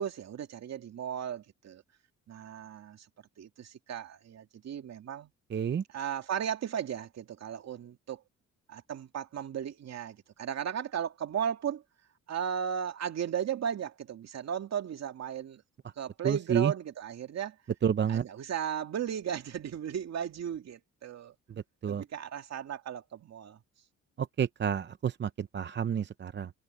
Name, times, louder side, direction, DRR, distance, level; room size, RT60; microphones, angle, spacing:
voice 1, 0.0-1.8 2.3-3.1 3.4-5.3 5.9-8.2 8.7-11.8 12.3-15.6 16.0-17.6 18.1-21.3 21.9-23.6, right 8 dB, 60° right, 2.4 m, -35 dB
voice 2, 5.5-5.8 16.2-16.7 17.8-18.2 21.8-22.0 24.2-26.5, right 8 dB, 35° right, 0.7 m, -29 dB
cardioid pair, 90°, 30 cm